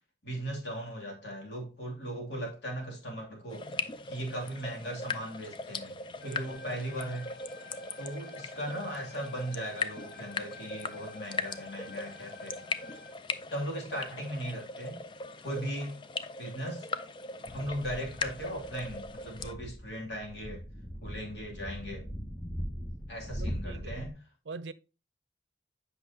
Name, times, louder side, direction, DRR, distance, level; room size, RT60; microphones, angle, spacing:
voice 1, 0.2-6.0 6.2-7.3 8.0-12.6 13.5-15.0 15.4-16.0 16.4-16.9 17.4-20.7 21.0-22.1 23.1-24.1, equal, 80° left, 2.5 m, -38 dB
sound 1, 3.5-19.5, left 4 dB, 25° left, 0.3 m, -39 dB
sound 2, 6.2-13.1, left 3 dB, 65° left, 1.4 m, -51 dB
sound 3, 17.4-24.1, equal, 10° left, 0.7 m, -40 dB
voice 2, 23.4-24.1 24.5-24.7, right 4 dB, 90° right, 0.5 m, -42 dB
8.1 x 5.7 x 2.7 m
head